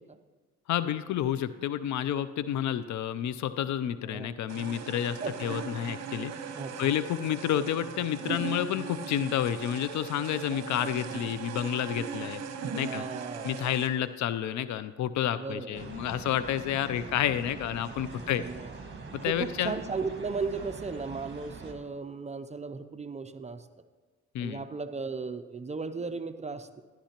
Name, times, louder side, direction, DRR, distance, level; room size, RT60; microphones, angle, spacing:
voice 1, 0.7-6.3 6.8-12.4 12.8-13.0 13.4-18.4 19.1-19.8 24.3-24.6, left 10 dB, 70° left, 14 dB, 0.5 m, -30 dB
sound 1, 4.5-13.9, right 6 dB, 60° right, 1.0 m, -39 dB
voice 2, 6.6-6.9 10.5-11.2 12.8-13.6 15.4-16.0 18.2-18.7 19.3-23.7 24.4-26.8, right 4 dB, 25° right, 9 dB, 0.5 m, -36 dB
sound 2, 15.7-21.7, right 4 dB, 40° right, 1.7 m, -43 dB
13.0 x 11.0 x 2.9 m, 1.4 s
cardioid pair, 90°, 30 cm